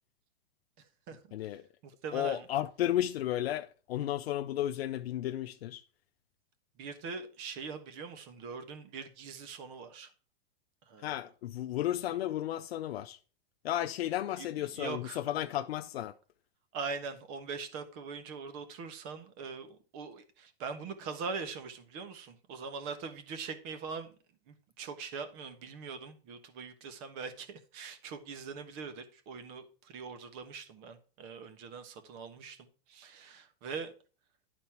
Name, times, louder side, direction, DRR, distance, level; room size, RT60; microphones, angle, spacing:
voice 1, 1.3-1.6 2.1-5.8 11.0-13.2 13.6-16.1, left 12 dB, 75° left, 0.6 m, -33 dB
voice 2, 1.8-2.5 6.8-10.1 10.9-11.1 14.4-15.2 16.7-24.1 24.5-33.9, right 5 dB, 30° right, 1.3 m, -42 dB
11.0 x 4.2 x 5.8 m
supercardioid pair, 165°, 31 cm